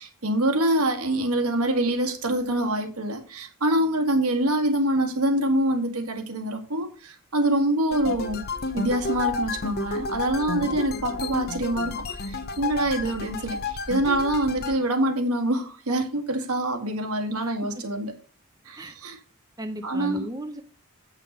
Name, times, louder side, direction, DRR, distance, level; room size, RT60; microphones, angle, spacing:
voice 1, 0.0-8.5 8.7-18.1 18.7-19.2 19.8-20.2, right 1 dB, 80° right, 1.8 m, -25 dB
sound 1, 7.9-14.8, left 3 dB, 45° left, 0.7 m, -31 dB
voice 2, 17.4-17.7 18.8-18.9 19.6-20.6, right 1 dB, 15° right, 0.6 m, -36 dB
8.1 x 5.8 x 5.2 m
head